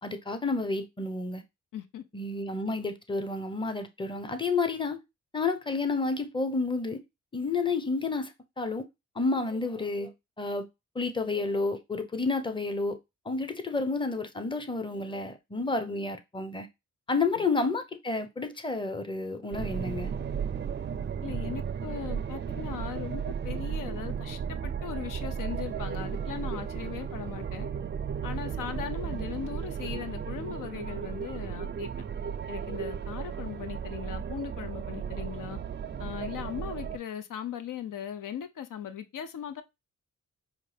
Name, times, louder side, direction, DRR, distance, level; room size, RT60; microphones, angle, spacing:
voice 1, 0.0-1.4 2.1-5.0 5.3-7.0 7.3-8.9 9.2-10.7 10.9-13.0 13.2-16.7 17.1-20.1, left 3 dB, 15° left, 0.7 m, -30 dB
voice 2, 1.7-2.0 21.2-27.7 28.2-31.9 32.5-35.6 36.0-39.6, left 9 dB, 85° left, 0.6 m, -39 dB
sound 1, 19.5-37.0, right 7 dB, 35° right, 0.4 m, -35 dB
5.2 x 2.5 x 3.3 m
cardioid pair, 70°, 31 cm